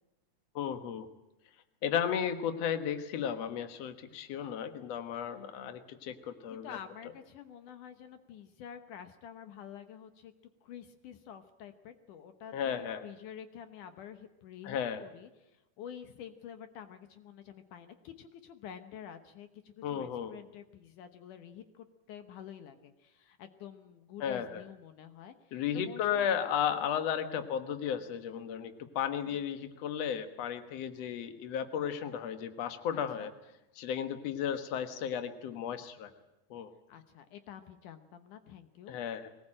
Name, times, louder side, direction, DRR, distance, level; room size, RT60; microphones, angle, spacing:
voice 1, 0.6-1.1 1.8-6.8 12.5-13.1 14.6-15.0 19.8-20.3 24.2-24.6 25.5-33.3 33.8-36.1 36.5-36.7 38.9-39.3, left 8 dB, 55° left, 8 dB, 2.3 m, -34 dB
voice 2, 6.5-10.3 10.6-26.3 29.3-29.6 32.9-33.3 36.9-39.0, left 9 dB, 75° left, 9 dB, 2.5 m, -49 dB
22.0 x 19.5 x 8.8 m, 0.97 s
omnidirectional pair, 3.8 m